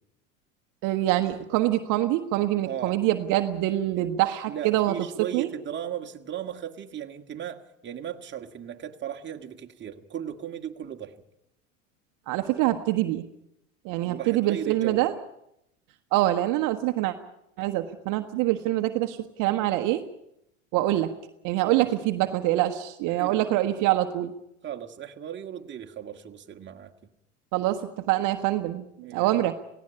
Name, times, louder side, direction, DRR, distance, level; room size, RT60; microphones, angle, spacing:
voice 1, 0.8-4.9 5.3-5.5 12.3-13.2 13.8-15.1 16.1-17.1 17.6-20.0 20.7-21.1 21.4-24.3 27.5-29.5, right 15 dB, 55° right, 7 dB, 1.3 m, -25 dB
voice 2, 2.6-3.0 4.0-4.1 4.5-11.2 14.0-15.1 21.6-21.9 23.1-23.5 24.6-27.1 29.0-29.5, right 9 dB, 30° right, 4 dB, 1.9 m, -37 dB
18.0 x 16.5 x 9.9 m, 0.81 s
hypercardioid pair, 90°, 38 cm